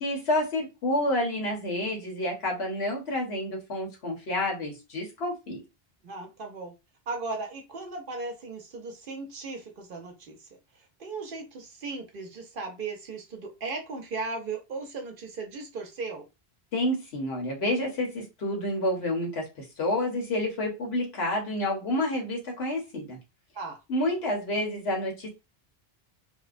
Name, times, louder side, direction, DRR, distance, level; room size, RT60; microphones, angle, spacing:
voice 1, 0.0-5.6 16.7-23.2 23.9-25.3, left 1 dB, 80° left, 0 dB, 1.2 m, -29 dB
voice 2, 6.0-6.7 7.1-10.5 10.7-16.3 23.5-23.8, right 3 dB, 60° right, 3 dB, 0.8 m, -37 dB
2.7 x 2.1 x 2.4 m, 0.26 s
omnidirectional pair, 1.1 m